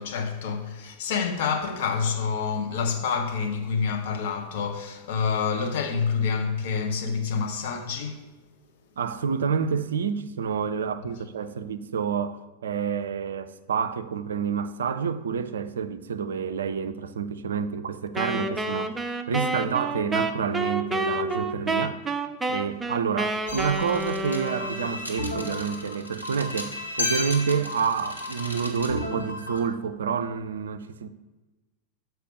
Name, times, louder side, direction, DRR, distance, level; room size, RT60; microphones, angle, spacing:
voice 1, 0.0-8.3, left 5 dB, 55° left, 0.9 m, -27 dB
voice 2, 9.0-22.0 22.5-26.7 27.0-31.1, right 6 dB, 65° right, 0.4 m, -28 dB
Wind instrument woodwind instrument, 18.2-25.0, right 2 dB, 10° right, 0.5 m, -29 dB
sound 1, 23.5-29.6, left 2 dB, 85° left, 1.1 m, -33 dB
6.7 x 4.6 x 6.3 m
figure-of-eight pair, 90°, 0 cm